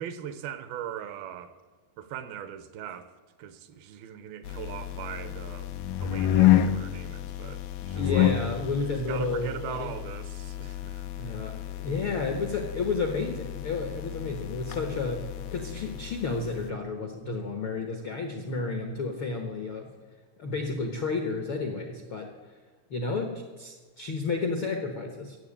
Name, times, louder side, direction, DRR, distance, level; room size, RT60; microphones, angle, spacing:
voice 1, 0.0-1.5 2.0-3.1 3.4-5.7 6.0-8.3 9.1-11.4, right 9 dB, 80° right, 2.7 m, -40 dB
sound 1, 4.4-16.7, left 12 dB, 85° left, 1.7 m, -29 dB
voice 2, 7.9-9.9 11.2-19.9 20.4-22.3 22.9-25.4, left 3 dB, 70° left, 1.2 m, -31 dB
15.5 x 7.6 x 8.7 m
omnidirectional pair, 4.3 m